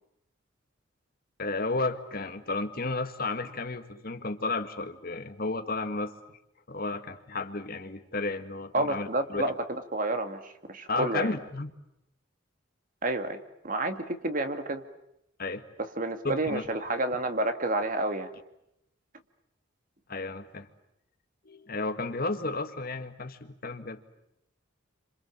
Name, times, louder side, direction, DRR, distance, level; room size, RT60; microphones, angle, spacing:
voice 1, 1.4-6.4 6.7-9.4 10.9-11.7 15.4-15.7 16.2-16.7 20.1-20.7 21.5-24.0, left 3 dB, 50° left, 8 dB, 1.8 m, -33 dB
voice 2, 8.7-11.3 13.0-14.8 15.8-18.3, right 2 dB, 45° right, 7 dB, 2.1 m, -30 dB
29.0 x 27.0 x 7.2 m, 0.82 s
head